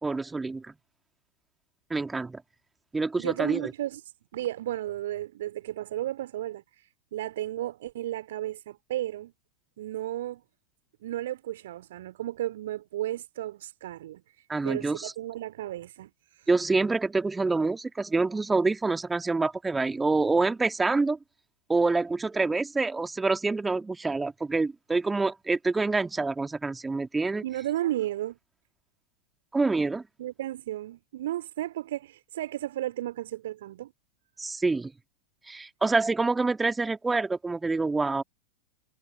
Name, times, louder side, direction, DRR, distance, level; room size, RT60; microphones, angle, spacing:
voice 1, 0.0-0.7 1.9-2.4 2.9-3.7 14.5-15.1 16.5-21.2 21.7-27.4 29.5-30.0 34.4-34.9 35.5-38.2, right 3 dB, 10° right, 2.8 m, -26 dB
voice 2, 3.2-4.0 4.3-9.3 9.8-10.4 11.0-14.2 14.6-16.5 27.4-28.4 30.2-33.9, right 13 dB, 55° right, 3.1 m, -34 dB
figure-of-eight pair, 90°, 0 cm